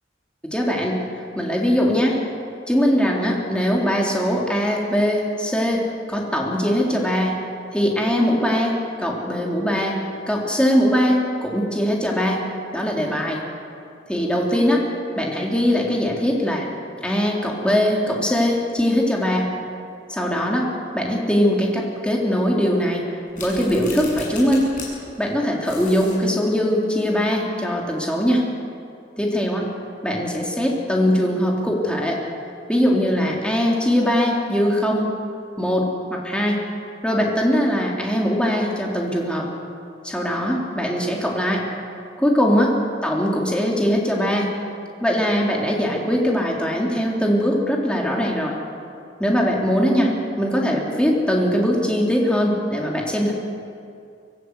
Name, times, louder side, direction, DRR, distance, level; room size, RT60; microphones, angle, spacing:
voice 1, 0.4-1.0 1.4-2.2 2.7-5.8 6.1-7.3 7.7-10.0 10.3-12.4 12.7-13.4 14.1-14.8 15.2-16.7 17.0-19.5 20.1-20.7 20.9-23.0 23.4-24.7 25.2-28.4 29.2-29.6 30.0-32.2 32.7-35.1 35.6-36.6 37.0-39.5 40.0-41.6 42.2-42.8 43.0-44.5 45.0-48.6 49.2-50.1 50.4-53.3, equal, 5° left, -2 dB, 3.6 m, -21 dB
sound 1, 23.3-24.9 25.2-25.3 25.6-26.2, left 4 dB, 45° left, 7.5 m, -36 dB
24.5 x 16.5 x 8.4 m, 2.5 s
head